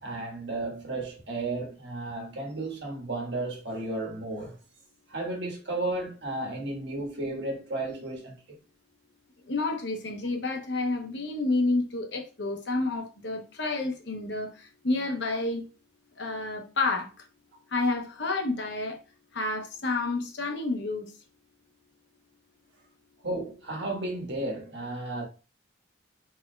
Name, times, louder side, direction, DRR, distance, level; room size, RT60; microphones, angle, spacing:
voice 1, 0.0-4.6 5.1-8.3 23.2-25.2, right 2 dB, 60° right, 1.5 m, -33 dB
voice 2, 9.4-15.6 16.2-17.2 17.7-19.0 19.3-21.1, left 2 dB, 60° left, 0.9 m, -29 dB
4.3 x 4.3 x 2.3 m
head